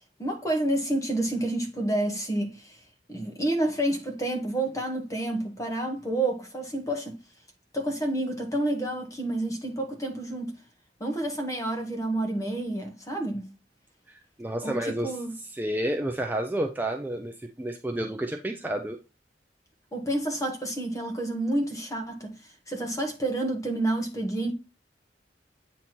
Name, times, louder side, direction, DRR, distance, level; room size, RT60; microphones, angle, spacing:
voice 1, 0.2-2.8 3.1-7.2 7.7-10.5 11.0-13.5 14.6-15.3 19.9-22.3 22.7-24.5, right 1 dB, 20° left, 1.2 m, -29 dB
voice 2, 14.1-15.2 15.4-19.0, right 1 dB, 10° right, 0.5 m, -30 dB
8.3 x 3.0 x 4.3 m
head